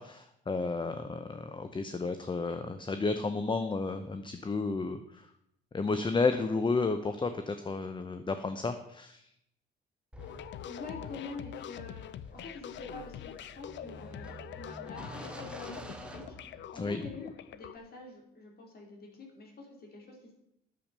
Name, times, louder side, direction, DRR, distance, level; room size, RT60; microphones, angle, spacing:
voice 1, 0.0-5.3 5.7-9.2 16.7-17.0, left 3 dB, 25° left, 9 dB, 0.7 m, -32 dB
sound 1, 10.1-17.1, right 1 dB, 5° right, 1.3 m, -49 dB
sound 2, 10.2-17.8, left 10 dB, 65° left, 0.6 m, -44 dB
voice 2, 10.6-20.3, left 3 dB, 50° left, 1 dB, 2.9 m, -46 dB
8.9 x 7.1 x 6.7 m, 0.77 s
cardioid pair, 90°, 20 cm